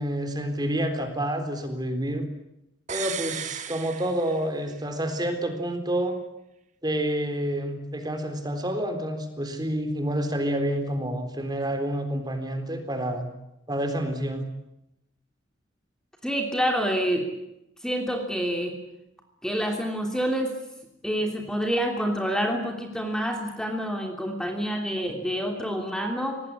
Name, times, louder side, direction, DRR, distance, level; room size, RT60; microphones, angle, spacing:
voice 1, 0.0-2.2 2.9-6.2 6.8-13.3 13.7-14.4, right 1 dB, 20° right, 7 dB, 3.9 m, -28 dB
sound 1, 2.9-4.8 5.1-5.2, right 8 dB, 40° right, 1.3 m, -35 dB
voice 2, 16.2-17.3 17.8-18.7 19.4-20.5 21.0-26.4, equal, 5° left, 3 dB, 3.1 m, -27 dB
26.0 x 19.5 x 9.9 m, 0.85 s
head